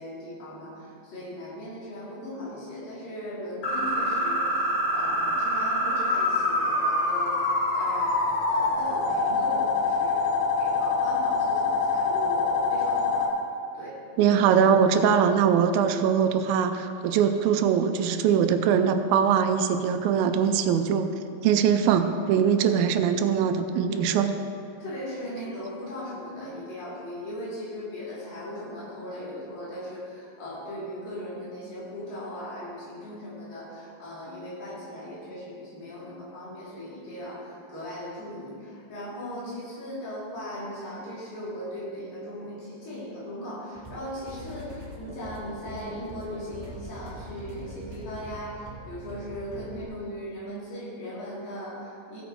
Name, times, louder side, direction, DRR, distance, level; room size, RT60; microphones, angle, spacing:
voice 1, 0.0-13.3 13.7-14.0 20.0-20.1 23.9-24.2 24.8-52.2, equal, 70° left, -9 dB, 4.8 m, -38 dB
sound 1, 3.6-13.3, left 2 dB, 90° left, 1.0 m, -25 dB
voice 2, 14.2-21.1 21.4-24.3, right 7 dB, 85° right, 8 dB, 2.4 m, -22 dB
sound 2, 43.7-49.8, right 1 dB, 30° right, 1.9 m, -43 dB
15.5 x 9.2 x 3.1 m, 2.4 s
omnidirectional pair, 4.2 m